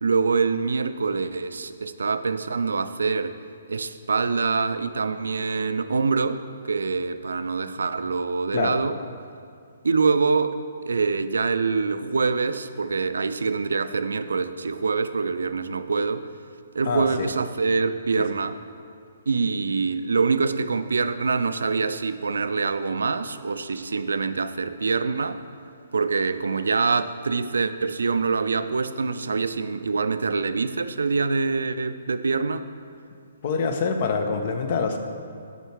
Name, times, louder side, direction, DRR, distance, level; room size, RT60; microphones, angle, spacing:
voice 1, 0.0-3.4 3.7-9.0 9.8-10.5 10.8-16.3 16.7-18.6 19.3-25.4 25.9-32.7, right 4 dB, 85° right, 11 dB, 0.3 m, -25 dB
voice 2, 16.8-17.3 33.4-35.0, left 5 dB, 50° left, 6 dB, 0.6 m, -25 dB
6.6 x 4.5 x 4.6 m, 2.3 s
hypercardioid pair, 140°, 0 cm